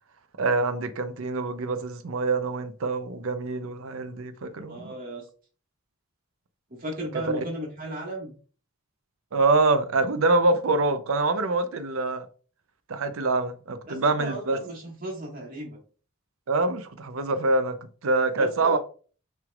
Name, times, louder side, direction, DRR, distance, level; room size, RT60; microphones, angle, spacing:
voice 1, 0.4-4.8 7.4-7.5 9.3-12.3 12.9-14.6 16.5-17.8 18.0-18.8, right 3 dB, 70° right, 0.6 m, -25 dB
voice 2, 4.7-5.2 6.8-8.3 13.9-15.8 18.4-18.8, right 1 dB, 40° right, 1.7 m, -35 dB
5.9 x 3.4 x 2.4 m
head